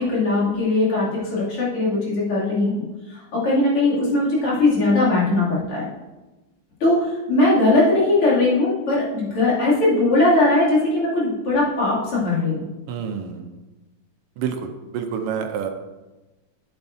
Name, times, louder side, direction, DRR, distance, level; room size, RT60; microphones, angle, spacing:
voice 1, 0.0-5.9 6.8-12.7, left 2 dB, 80° left, -8 dB, 3.6 m, -20 dB
voice 2, 12.9-13.6 14.4-15.7, right 7 dB, 85° right, 5 dB, 1.7 m, -28 dB
9.1 x 8.8 x 2.7 m, 1.1 s
omnidirectional pair, 2.4 m